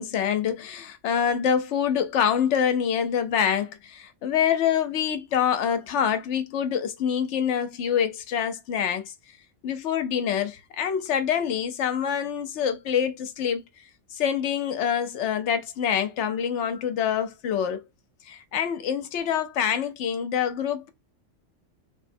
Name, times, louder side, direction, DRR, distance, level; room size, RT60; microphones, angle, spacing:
voice 1, 0.0-9.1 9.6-13.6 14.1-17.8 18.3-20.9, left 8 dB, 70° left, 0.9 m, -26 dB
3.3 x 2.1 x 2.5 m
omnidirectional pair, 1.3 m